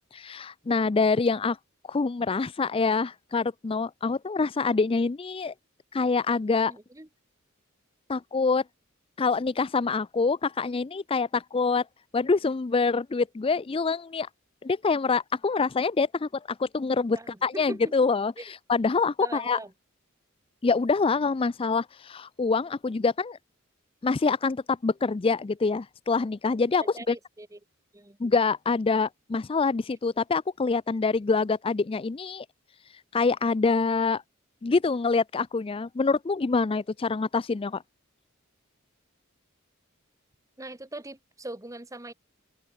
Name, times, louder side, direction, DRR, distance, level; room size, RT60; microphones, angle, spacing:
voice 1, 0.1-1.6 1.9-5.5 5.9-6.7 8.1-8.6 9.2-11.9 12.1-14.3 14.6-19.6 20.6-23.4 24.0-27.2 28.2-32.5 33.1-34.2 34.6-37.8, left 4 dB, 25° left, 0.4 m, -25 dB
voice 2, 6.7-7.1 17.1-17.9 18.4-18.5 19.2-19.7 26.8-27.6 27.9-28.2 40.6-42.1, right 2 dB, 15° right, 1.4 m, -41 dB
open air
head